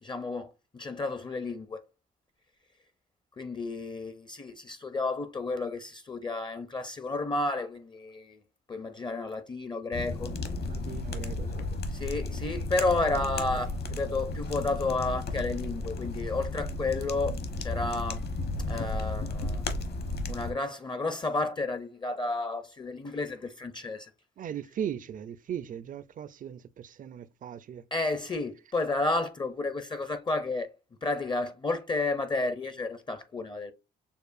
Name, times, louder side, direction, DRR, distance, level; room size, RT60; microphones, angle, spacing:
voice 1, 0.0-1.8 3.4-8.4 8.7-10.3 11.9-18.2 18.7-19.6 20.3-24.1 27.9-30.7 31.0-33.7, left 3 dB, 25° left, 0.5 m, -31 dB
sound 1, 9.9-20.5, left 2 dB, 55° left, 1.0 m, -34 dB
voice 2, 10.7-11.8 24.4-27.8, right 9 dB, 45° right, 0.4 m, -38 dB
6.7 x 2.4 x 2.5 m
cardioid pair, 90°, 20 cm